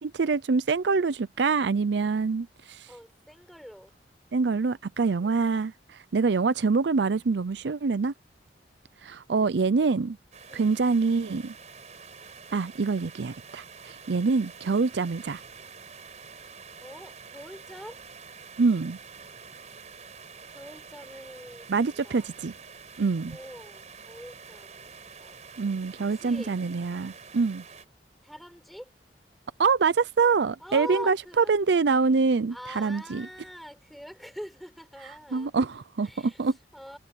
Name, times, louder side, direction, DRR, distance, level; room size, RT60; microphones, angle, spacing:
voice 1, 0.0-2.9 4.3-8.1 9.0-10.2 10.5-11.5 12.5-15.4 18.6-19.0 21.7-22.5 23.0-23.4 25.6-27.6 29.6-33.2 35.3-36.5, right 4 dB, 70° right, 0.5 m, -25 dB
voice 2, 2.9-4.0 5.2-5.6 9.8-10.0 10.5-10.8 16.8-18.0 19.6-20.0 20.5-22.3 23.3-25.5 26.1-26.6 28.2-28.9 30.6-31.5 32.5-35.5 36.0-37.0, equal, ahead, 6.4 m, -44 dB
sound 1, 10.3-27.8, right 5 dB, 40° right, 5.6 m, -47 dB
head